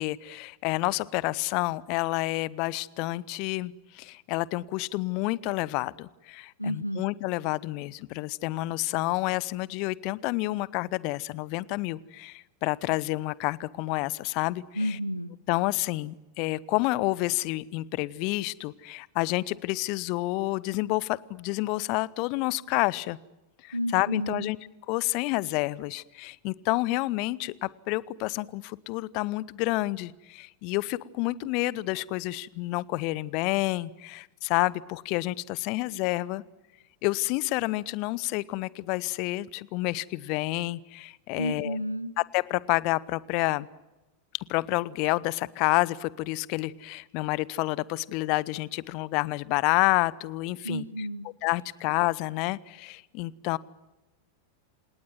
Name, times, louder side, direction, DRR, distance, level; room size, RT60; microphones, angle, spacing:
voice 1, 0.0-14.6 15.5-23.2 23.6-24.6 24.9-36.4 37.0-41.8 42.3-43.7 44.5-50.8 51.4-53.6, left 20 dB, 45° left, 22 dB, 0.8 m, -29 dB
voice 2, 6.6-7.0 14.7-15.3 23.7-24.5 41.4-42.1 50.6-51.3, equal, 90° right, 16 dB, 1.3 m, -31 dB
28.0 x 18.5 x 9.3 m, 1.0 s
figure-of-eight pair, 90°, 0 cm